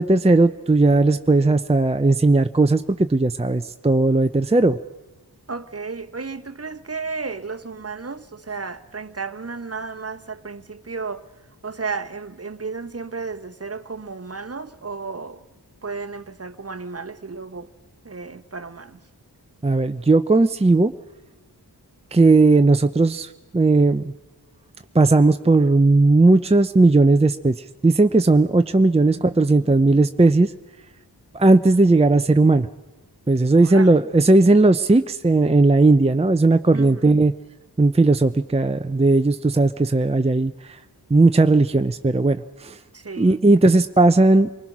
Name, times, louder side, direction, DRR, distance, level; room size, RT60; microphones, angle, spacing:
voice 1, 0.0-4.8 19.6-20.9 22.1-24.1 24.9-27.5 27.8-30.5 31.3-32.7 33.3-37.3 37.8-40.8 41.1-42.8 43.2-44.5, right 2 dB, 15° right, 0.6 m, -17 dB
voice 2, 5.5-11.3 11.6-15.4 15.8-17.7 18.0-19.0 29.1-30.0 33.6-33.9 36.7-37.1 42.9-43.4, right 4 dB, 35° right, 1.0 m, -33 dB
27.5 x 20.0 x 6.1 m
cardioid pair, 45°, 40 cm